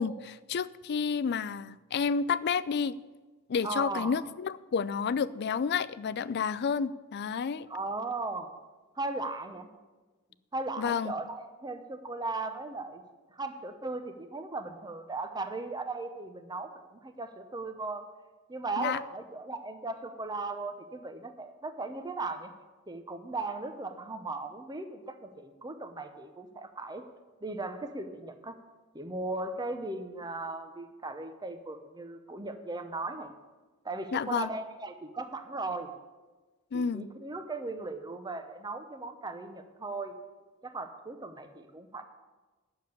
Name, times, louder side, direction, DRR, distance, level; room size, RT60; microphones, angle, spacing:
voice 1, 0.0-3.0 3.5-7.7 10.8-11.1 18.8-19.0 34.1-34.5 36.7-37.1, left 6 dB, 50° left, 17 dB, 0.4 m, -30 dB
voice 2, 3.6-4.1 7.7-8.5 9.0-9.7 10.5-13.0 13.3-18.1 18.5-22.5 22.9-27.1 27.4-28.5 28.9-33.3 33.8-35.9 36.7-40.1 40.6-42.0, right 3 dB, 20° right, 8 dB, 0.8 m, -37 dB
10.0 x 6.8 x 8.3 m, 1.2 s
head